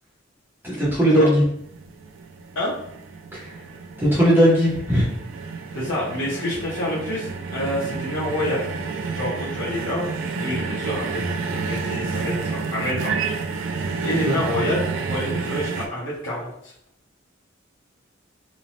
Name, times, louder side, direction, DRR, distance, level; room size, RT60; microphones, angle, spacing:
voice 1, 0.6-1.4 3.3-3.5 4.0-5.0 14.2-14.4, equal, 10° right, -8 dB, 0.7 m, -18 dB
sound 1, 1.6-15.9, right 4 dB, 70° right, 0.3 m, -30 dB
voice 2, 5.7-8.7 9.1-10.0 10.4-13.1 13.7-16.7, left 1 dB, 75° left, -8 dB, 0.7 m, -28 dB
3.0 x 2.0 x 2.6 m, 0.71 s
head